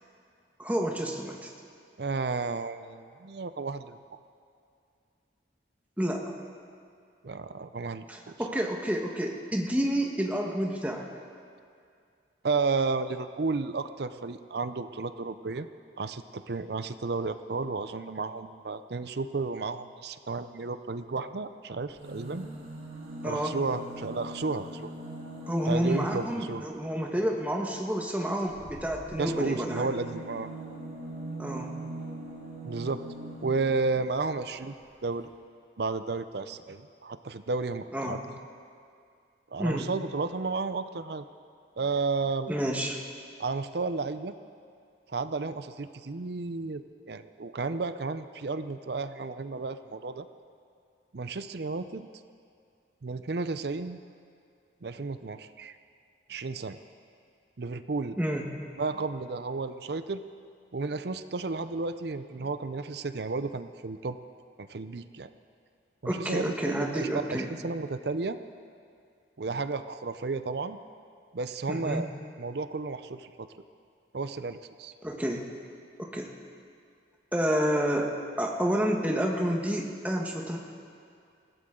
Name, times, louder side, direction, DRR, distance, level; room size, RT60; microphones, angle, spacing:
voice 1, 0.6-1.5 6.0-6.3 8.1-11.1 23.2-23.6 25.5-29.9 31.4-31.7 37.9-38.2 39.6-39.9 42.5-43.0 58.2-58.5 66.0-67.5 71.7-72.0 75.0-75.4 76.0-76.3 77.3-80.6, equal, 10° right, 1 dB, 1.2 m, -29 dB
voice 2, 2.0-4.0 7.2-8.3 12.4-15.7 16.0-22.5 23.2-24.9 25.7-26.7 29.2-30.5 32.6-33.0 33.4-35.3 35.8-38.4 39.5-41.3 41.8-42.5 43.4-44.3 45.1-50.3 51.1-52.1 53.0-54.0 54.8-55.7 56.3-56.8 57.6-58.2 58.8-60.2 60.7-64.2 64.6-65.3 66.0-68.4 69.4-70.8 71.3-72.1 72.4-73.5 74.1-74.9, right 4 dB, 55° right, 11 dB, 0.5 m, -32 dB
sound 1, 21.9-26.8 28.4-33.9 34.8-34.9 35.1-35.2, right 1 dB, 80° right, 3.2 m, -41 dB
20.5 x 16.0 x 3.8 m, 2.4 s
head